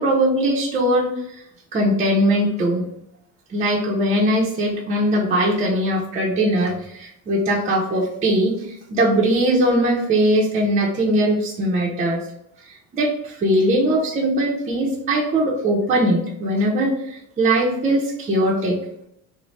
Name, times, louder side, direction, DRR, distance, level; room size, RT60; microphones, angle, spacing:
voice 1, 0.0-1.4 1.7-2.9 3.5-12.2 12.6-18.8, right 1 dB, 20° right, -4 dB, 0.6 m, -20 dB
4.1 x 2.1 x 3.1 m, 0.75 s
cardioid pair, 155°, 34 cm